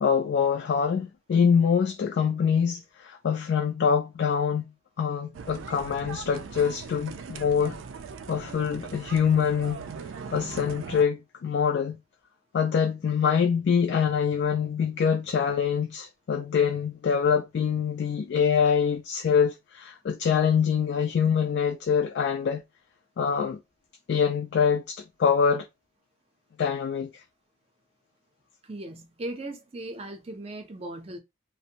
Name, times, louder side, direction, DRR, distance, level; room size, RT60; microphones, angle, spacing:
voice 1, 0.0-4.7 5.0-7.8 8.3-9.9 10.3-12.0 12.5-22.6 23.2-23.6 24.1-25.7 26.6-27.2, left 6 dB, 60° left, 0.3 m, -25 dB
sound 1, 5.3-11.1, right 5 dB, 85° right, 0.4 m, -40 dB
voice 2, 28.6-31.2, right 1 dB, 30° right, 0.5 m, -38 dB
2.5 x 2.1 x 2.8 m
head